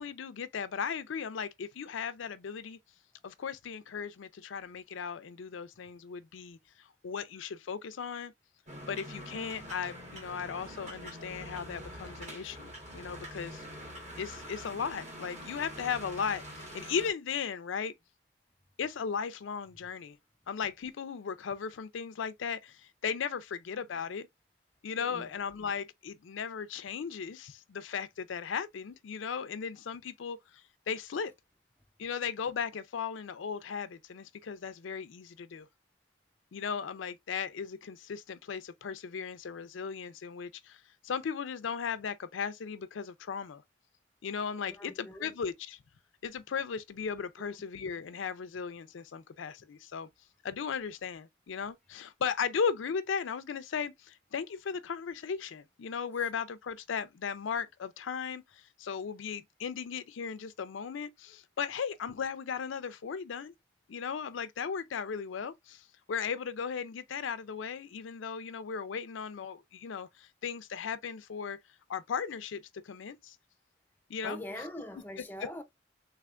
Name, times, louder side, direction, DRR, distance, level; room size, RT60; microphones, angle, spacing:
voice 1, 0.0-2.8 3.2-8.3 8.9-13.6 14.2-17.9 18.8-20.2 20.5-24.3 24.8-31.3 32.0-35.7 36.5-43.6 44.2-45.8 46.2-50.1 50.4-63.5 63.9-71.6 71.9-73.4 74.1-74.4, left 6 dB, 80° left, 0.4 m, -37 dB
sound 1, 8.7-17.1, equal, 35° right, 1.3 m, -45 dB
voice 2, 25.0-25.3 44.7-45.3 47.4-47.9 74.2-75.6, equal, 10° left, 0.5 m, -44 dB
3.3 x 3.3 x 2.4 m
head